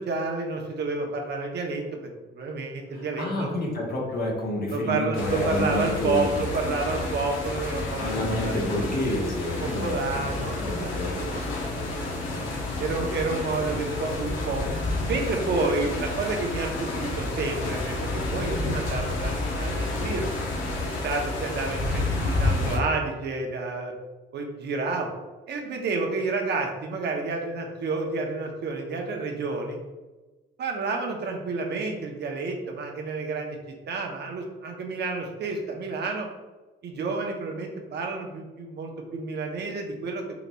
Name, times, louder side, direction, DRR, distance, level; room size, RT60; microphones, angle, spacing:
voice 1, 0.0-3.5 4.7-8.6 9.6-11.4 11.8-12.5 12.8-14.6 15.1-20.3 20.8-23.9 24.3-25.1 25.5-29.8 30.6-33.6 33.9-36.3 36.8-40.2, right 3 dB, 60° right, 2 dB, 0.7 m, -30 dB
voice 2, 2.9-6.3 8.0-11.2, left 1 dB, 50° left, -2 dB, 1.1 m, -29 dB
sound 1, 5.1-22.8, left 2 dB, 85° left, 0.8 m, -30 dB
3.9 x 2.9 x 2.2 m, 1.2 s
cardioid pair, 90°, 20 cm